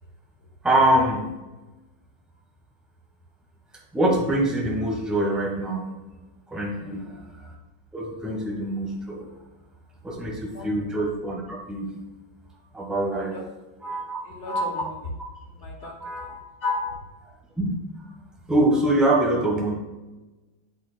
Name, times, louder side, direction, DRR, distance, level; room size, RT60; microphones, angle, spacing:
voice 1, 0.6-1.3 3.9-5.9 6.5-7.1 7.4-7.5 7.9-9.3 10.0-12.0 12.7-13.3 13.8-14.2 16.0-16.4 17.6-17.7 18.5-19.7, right 1 dB, ahead, 0 dB, 0.6 m, -24 dB
voice 2, 6.8-7.2 10.4-10.7 13.3-13.4 14.2-15.1 15.6-16.3 16.6-16.9, left 2 dB, 45° left, 1 dB, 1.0 m, -31 dB
7.9 x 7.8 x 2.2 m, 1.1 s
omnidirectional pair, 2.2 m